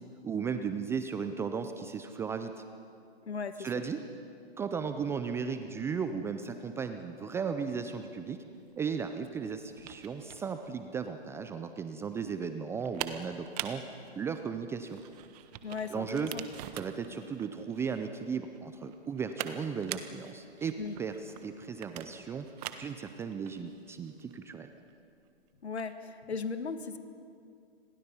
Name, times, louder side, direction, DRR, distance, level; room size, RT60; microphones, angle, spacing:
voice 1, 0.2-2.5 3.6-4.0 4.6-8.4 8.8-15.0 15.9-16.3 16.7-22.5 22.8-24.7, right 6 dB, 10° right, 8 dB, 0.5 m, -36 dB
voice 2, 3.2-3.7 15.6-16.4 20.8-21.0 25.6-27.0, left 5 dB, 85° left, 10 dB, 1.6 m, -37 dB
sound 1, 8.6-26.0, right 11 dB, 40° right, 1.4 m, -45 dB
29.5 x 22.0 x 5.6 m, 2.5 s
hypercardioid pair, 130°, 32 cm